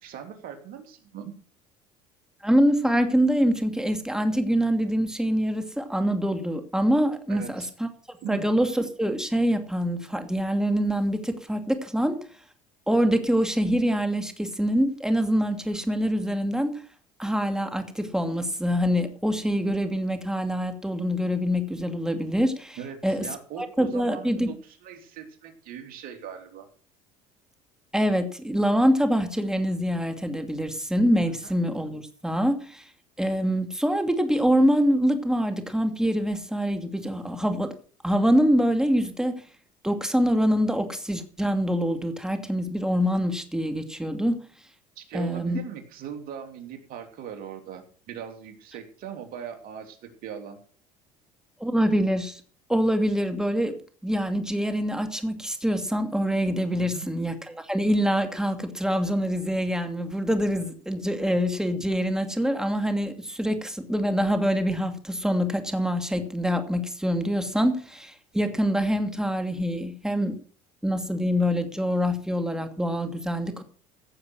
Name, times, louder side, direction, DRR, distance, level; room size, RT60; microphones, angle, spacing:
voice 1, 0.0-1.3 7.3-7.7 8.2-8.5 12.0-12.1 22.8-26.7 31.4-31.5 45.0-50.6 56.7-57.1, right 8 dB, 60° right, 5 dB, 3.3 m, -40 dB
voice 2, 2.4-7.9 8.3-12.2 12.9-16.8 17.2-22.8 23.0-23.3 23.6-24.5 27.9-32.8 33.2-37.7 38.0-39.3 39.8-44.4 45.1-45.6 51.6-52.4 52.7-53.7 54.0-70.3 70.8-73.6, equal, 5° right, 7 dB, 2.5 m, -25 dB
16.0 x 7.2 x 6.3 m, 0.43 s
supercardioid pair, 85°, 16 cm